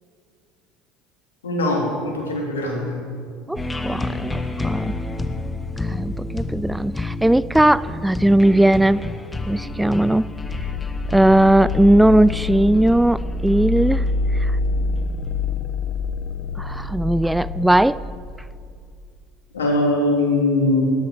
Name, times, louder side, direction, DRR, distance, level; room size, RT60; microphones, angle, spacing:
voice 1, 1.4-3.0 19.5-20.9, left 2 dB, 85° left, 3.4 m, -21 dB
voice 2, 3.5-4.9 5.8-9.0 9.5-10.3 11.1-14.0 14.3-14.5 16.6-18.1, right 1 dB, 5° right, 0.3 m, -18 dB
sound 1, 3.6-15.3, left 2 dB, 15° left, 1.4 m, -30 dB
sound 2, 10.4-19.1, left 3 dB, 55° left, 1.3 m, -26 dB
19.0 x 12.0 x 6.2 m
hypercardioid pair, 70°, 0 cm